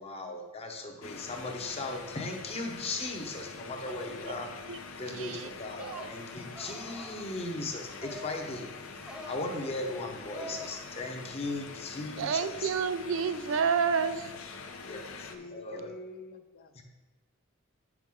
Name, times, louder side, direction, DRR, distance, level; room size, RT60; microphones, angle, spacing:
voice 1, 0.0-4.5 5.0-12.7 14.8-15.9 16.7-16.8, left 2 dB, 30° left, 2 dB, 0.8 m, -38 dB
sound 1, 1.0-15.3, left 4 dB, 80° left, 0.7 m, -45 dB
voice 2, 5.1-5.5 5.8-6.1 12.2-14.4, right 6 dB, 65° right, 11 dB, 0.4 m, -29 dB
sound 2, 5.8-6.1 6.5-7.3 8.0-8.5 9.0-9.4 10.3-10.8, equal, 5° right, 0.7 m, -44 dB
voice 3, 15.3-16.8, left 3 dB, 45° left, 8 dB, 0.4 m, -46 dB
8.2 x 6.0 x 3.7 m, 1.2 s
head